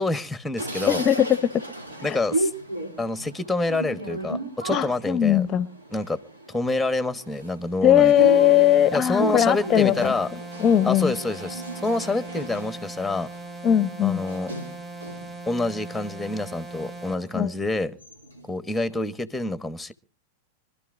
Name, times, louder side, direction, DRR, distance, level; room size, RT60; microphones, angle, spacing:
voice 1, 0.0-1.0 2.0-2.5 3.0-5.5 5.9-6.2 6.5-8.3 8.9-10.3 10.8-13.3 14.0-14.5 15.5-17.9 18.5-19.9, left 2 dB, 5° left, 1.0 m, -27 dB
sound 1, 0.6-15.4 15.8-16.8 17.3-17.4 17.7-18.5, right 2 dB, 85° right, 2.9 m, -35 dB
voice 2, 0.9-1.6 2.1-2.2 4.7-5.7 7.8-10.1 10.6-11.1 13.6-14.2 17.3-17.5, left 10 dB, 30° left, 0.7 m, -19 dB
sound 2, 8.1-17.1, right 2 dB, 25° right, 3.4 m, -39 dB
25.0 x 12.5 x 2.6 m
hypercardioid pair, 95°, 0 cm